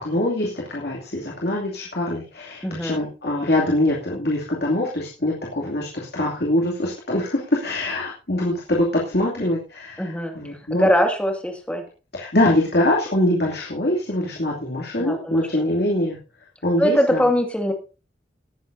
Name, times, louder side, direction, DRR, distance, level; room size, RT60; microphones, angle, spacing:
voice 1, 0.0-10.9 12.1-16.2 16.6-17.3, left 1 dB, 60° left, -3 dB, 2.7 m, -23 dB
voice 2, 2.6-3.0 10.0-11.8 15.0-15.7 16.8-17.7, equal, 5° left, 3 dB, 2.2 m, -22 dB
19.0 x 9.7 x 2.7 m, 0.33 s
head